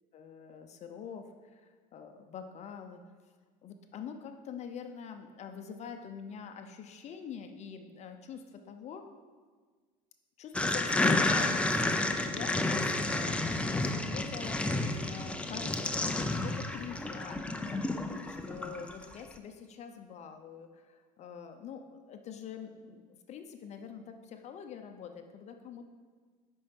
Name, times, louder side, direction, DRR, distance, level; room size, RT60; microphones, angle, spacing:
voice 1, 0.1-1.3 1.5-3.0 3.6-9.1 10.4-13.4 13.8-14.6 15.1-17.8 18.3-25.8, left 7 dB, 40° left, 6 dB, 0.7 m, -45 dB
sound 1, 10.5-19.1, left 2 dB, 5° left, 0.5 m, -31 dB
8.5 x 5.5 x 5.3 m, 1.5 s
supercardioid pair, 120°, 17 cm